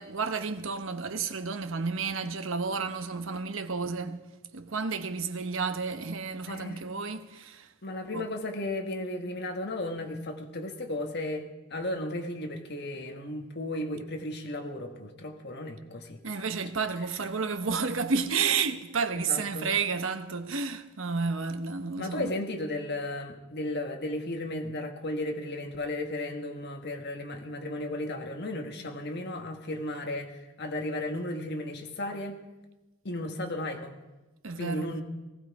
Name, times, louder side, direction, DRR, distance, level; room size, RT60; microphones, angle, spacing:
voice 1, 0.0-4.2 4.5-7.7 8.1-8.3 16.2-22.3 34.4-34.9, right 5 dB, 60° right, 1.0 m, -31 dB
voice 2, 6.5-6.8 7.8-16.2 19.1-19.7 22.0-32.4 33.0-34.0 34.5-35.0, left 1 dB, 50° left, 1.5 m, -35 dB
19.0 x 15.0 x 4.8 m
head